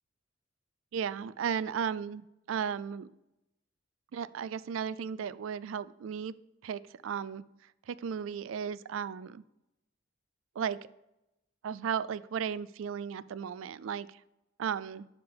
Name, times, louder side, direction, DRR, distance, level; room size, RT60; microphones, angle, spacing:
voice 1, 0.9-3.1 4.1-6.3 6.6-7.4 7.9-9.4 10.6-10.8 11.6-14.1 14.6-15.1, right 7 dB, 85° right, 17 dB, 0.3 m, -35 dB
11.0 x 3.8 x 3.5 m, 0.89 s
head